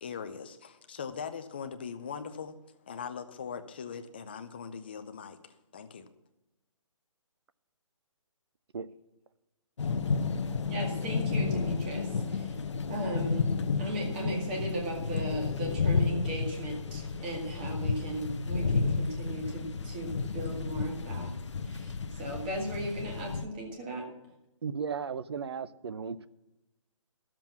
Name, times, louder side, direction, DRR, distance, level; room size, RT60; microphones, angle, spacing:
voice 1, 0.0-6.1, left 6 dB, 20° left, 0.5 m, -41 dB
sound 1, 9.8-23.4, left 5 dB, 60° left, 0.8 m, -32 dB
voice 2, 10.7-12.6 12.9-21.3 21.6-24.1, right 1 dB, 15° right, 2.0 m, -37 dB
voice 3, 24.6-26.3, right 6 dB, 50° right, 0.7 m, -35 dB
12.5 x 7.5 x 7.2 m
hypercardioid pair, 170°, 17 cm